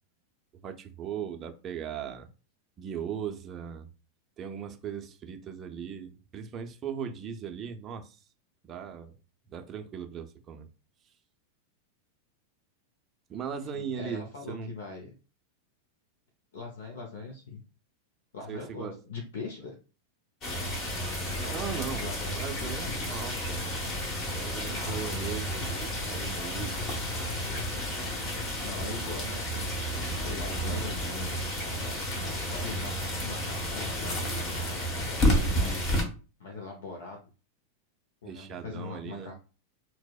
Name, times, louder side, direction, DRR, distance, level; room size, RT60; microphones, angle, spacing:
voice 1, 0.6-2.3 2.8-3.9 4.4-8.2 8.6-9.1 9.5-10.7 13.3-14.7 18.5-19.0 21.5-22.1 22.3-23.6 24.3-27.0 30.5-30.8 35.1-35.8 38.2-39.3, right 7 dB, 30° right, 0.5 m, -38 dB
voice 2, 13.7-15.1 16.5-17.6 18.3-19.7 21.4-22.8 24.7-25.4 28.6-29.7 30.2-31.4 32.5-34.2 35.3-35.9 36.4-37.3 38.2-39.3, left 4 dB, 75° left, 0.6 m, -41 dB
sound 1, 20.4-36.0, equal, 40° left, 0.9 m, -31 dB
2.7 x 2.0 x 2.3 m
hypercardioid pair, 100°, 0 cm